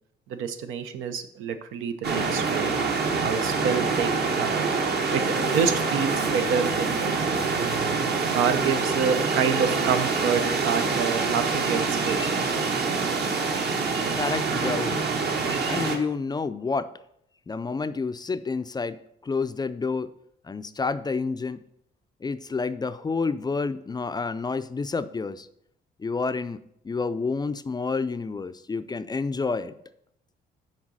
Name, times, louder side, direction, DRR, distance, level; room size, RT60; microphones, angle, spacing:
voice 1, 0.3-2.7 3.2-4.6 5.1-7.7 8.3-12.4, right 6 dB, 90° right, 9 dB, 0.7 m, -28 dB
sound 1, 2.0-16.0, right 4 dB, 55° right, 1.1 m, -25 dB
voice 2, 14.1-14.9 15.7-16.9 17.5-19.0 19.2-20.1 20.4-21.6 22.2-25.5 26.0-29.7, left 4 dB, 20° left, 12 dB, 0.3 m, -29 dB
6.4 x 3.9 x 6.2 m, 0.74 s
cardioid pair, 90°, 20 cm